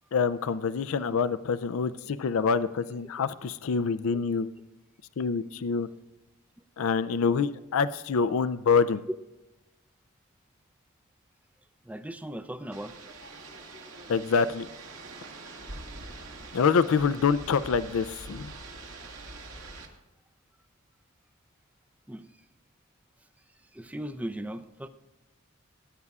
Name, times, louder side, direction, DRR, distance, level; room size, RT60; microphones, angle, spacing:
voice 1, 0.1-4.5 5.2-5.9 6.8-9.0 14.1-14.7 16.5-18.5, left 5 dB, 70° left, 14 dB, 0.4 m, -26 dB
voice 2, 11.8-13.0 22.1-22.3 23.7-24.9, right 1 dB, 5° right, 9 dB, 0.5 m, -37 dB
sound 1, 12.7-19.9, right 2 dB, 70° right, 2.0 m, -44 dB
18.5 x 9.5 x 2.4 m, 1.0 s
head